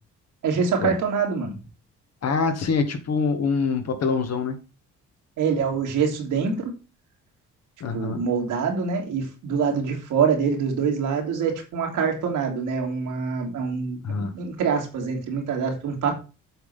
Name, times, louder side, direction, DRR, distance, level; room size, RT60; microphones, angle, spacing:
voice 1, 0.4-1.6 5.4-6.7 7.9-16.2, right 6 dB, 80° right, 2 dB, 2.8 m, -25 dB
voice 2, 2.2-4.6 7.8-8.2 14.0-14.3, left 5 dB, 60° left, 6 dB, 1.9 m, -25 dB
7.9 x 4.0 x 6.8 m, 0.32 s
cardioid pair, 90°, 30 cm